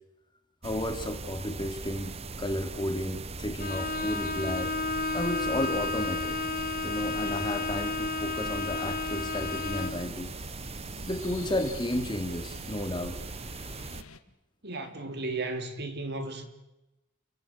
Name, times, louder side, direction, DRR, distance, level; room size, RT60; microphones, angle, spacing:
voice 1, 0.6-4.8 5.1-6.4 6.8-10.3 11.1-13.2, left 1 dB, 20° left, 2.5 m, -33 dB
sound 1, 0.6-14.0, right 3 dB, 30° right, 0.9 m, -40 dB
Bowed string instrument, 3.6-10.1, left 3 dB, 45° left, 1.5 m, -32 dB
sound 2, 8.8-14.2, left 5 dB, 90° left, 1.9 m, -50 dB
voice 2, 14.6-16.4, right 2 dB, 55° right, 3.3 m, -34 dB
30.0 x 17.0 x 8.6 m
head